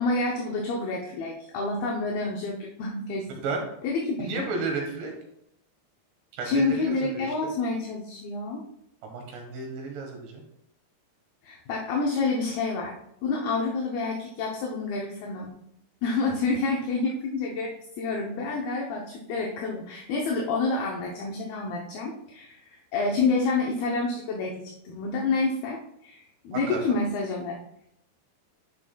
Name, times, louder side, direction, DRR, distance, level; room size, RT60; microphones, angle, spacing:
voice 1, 0.0-3.3 3.8-4.5 6.4-8.6 11.4-12.9 13.2-15.5 16.0-24.5 24.9-27.6, left 3 dB, 75° left, -1 dB, 2.3 m, -28 dB
voice 2, 4.2-5.1 6.3-7.5 9.0-10.4 26.5-27.0, right 4 dB, 75° right, 2 dB, 3.5 m, -33 dB
10.5 x 6.0 x 2.3 m, 0.76 s
omnidirectional pair, 5.2 m